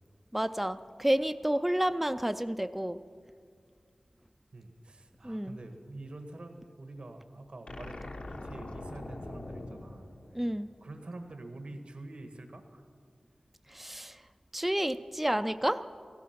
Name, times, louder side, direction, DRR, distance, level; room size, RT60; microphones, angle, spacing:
voice 1, 0.3-3.0 5.2-5.6 10.3-10.7 13.7-14.2 14.5-15.8, right 1 dB, 10° right, 10 dB, 0.4 m, -30 dB
voice 2, 4.5-10.0 10.3-12.9, right 2 dB, 65° right, 6 dB, 1.4 m, -46 dB
sound 1, 7.7-11.0, left 2 dB, 75° left, 1.2 m, -43 dB
16.0 x 14.5 x 5.9 m, 2.2 s
wide cardioid pair, 60°, 2 cm